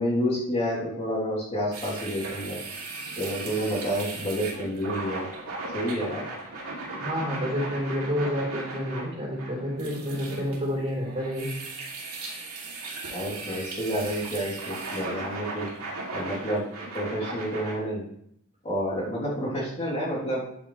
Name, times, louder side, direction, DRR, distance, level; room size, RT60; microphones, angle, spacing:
voice 1, 0.0-2.6 3.1-5.3 5.7-6.3 13.1-15.7 16.1-16.6 16.9-18.0 18.6-20.4, equal, 30° left, -7 dB, 3.2 m, -29 dB
sound 1, 1.7-17.8, right 3 dB, 75° right, 2.8 m, -37 dB
voice 2, 7.0-11.5, equal, 30° right, -5 dB, 3.8 m, -29 dB
9.9 x 8.5 x 3.2 m, 0.71 s
head